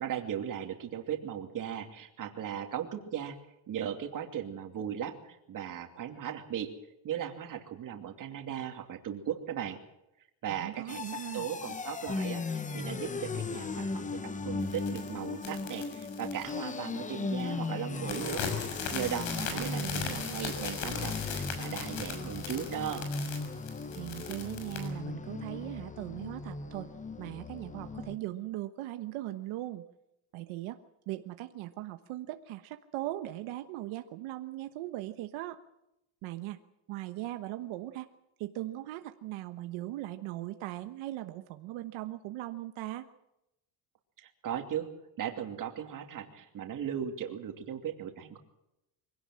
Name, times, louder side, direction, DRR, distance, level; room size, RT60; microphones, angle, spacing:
voice 1, 0.0-3.3 3.7-6.7 7.0-9.8 10.4-11.0 11.3-18.5 18.9-23.1 44.2-44.9 45.2-48.4, right 9 dB, 40° right, 5 dB, 2.7 m, -37 dB
voice 2, 10.5-11.5 19.4-20.3 23.9-26.9 27.2-29.8 30.3-30.8 31.1-35.6 36.2-36.6 36.9-38.1 38.4-43.1, right 15 dB, 85° right, 8 dB, 1.3 m, -39 dB
sound 1, 10.9-28.2, left 4 dB, 15° left, 0.8 m, -37 dB
sound 2, 14.6-17.1 17.4-17.7 18.0-24.9, left 6 dB, 85° left, 6.3 m, -39 dB
24.0 x 17.5 x 7.6 m, 0.87 s
cardioid pair, 165°, 47 cm